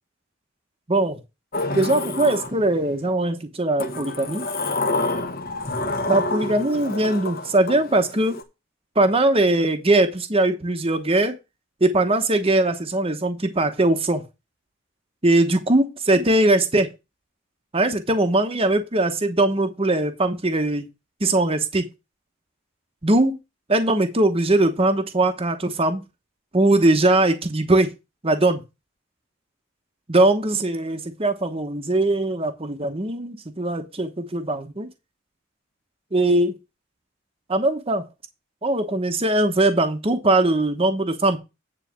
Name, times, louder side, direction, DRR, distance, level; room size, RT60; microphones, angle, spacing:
voice 1, 0.9-1.2 1.7-4.5 6.1-8.4 8.9-11.4 11.8-14.2 15.2-16.9 17.7-20.9 21.2-21.8 23.0-23.4 23.7-26.0 26.5-27.9 28.2-28.6 30.1-34.9 36.1-36.6 37.5-38.0 38.6-41.4, right 2 dB, 30° right, 1.0 m, -20 dB
Sliding door, 1.5-3.0 3.8-8.4, left 2 dB, 45° left, 1.4 m, -28 dB
9.4 x 4.1 x 7.4 m
head